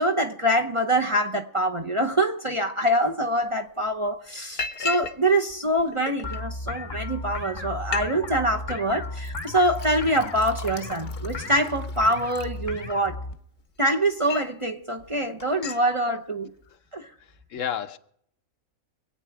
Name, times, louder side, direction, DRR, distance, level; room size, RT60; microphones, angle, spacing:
voice 1, 0.0-13.2 13.8-16.5 16.9-17.1, right 1 dB, 30° right, 0.7 m, -25 dB
Liquid, 3.4-3.5 3.9-4.1 4.6-5.2 5.5-6.4 7.1-7.2 7.4-7.5 7.8-8.1 8.4-8.8 9.2-13.1 13.6-14.6 15.0-15.2 15.4-15.9, left 5 dB, 50° left, 1.0 m, -37 dB
sound 1, 6.2-13.3, left 2 dB, 20° left, 0.8 m, -35 dB
voice 2, 17.2-18.0, left 9 dB, 75° left, 1.2 m, -32 dB
24.5 x 8.7 x 4.7 m
omnidirectional pair, 1.4 m